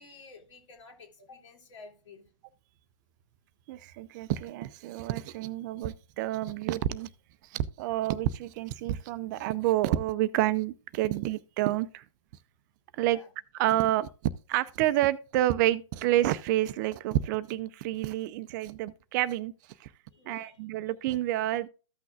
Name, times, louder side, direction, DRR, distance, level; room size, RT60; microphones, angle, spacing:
voice 1, 0.0-2.2 13.1-13.3 20.1-20.6, left 4 dB, 65° left, 3.1 m, -51 dB
voice 2, 3.7-7.1 7.4-12.0 12.9-13.2 13.5-14.1 14.5-19.5 19.8-19.9 20.3-21.7, right 14 dB, 35° right, 0.5 m, -29 dB
14.5 x 6.0 x 2.4 m
hypercardioid pair, 130°, 17 cm